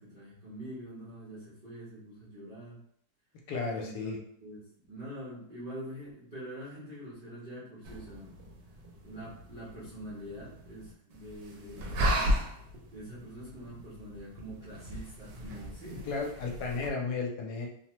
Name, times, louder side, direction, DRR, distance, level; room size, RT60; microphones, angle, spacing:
voice 1, 0.0-2.8 3.7-8.3 9.0-12.4 12.9-16.0, equal, 45° right, -9 dB, 0.7 m, -45 dB
voice 2, 3.5-4.2 16.0-17.7, left 4 dB, 75° left, 1 dB, 1.1 m, -33 dB
sound 1, 7.8-16.9, equal, 90° right, 1.2 m, -36 dB
2.9 x 2.0 x 2.9 m, 0.66 s
omnidirectional pair, 1.8 m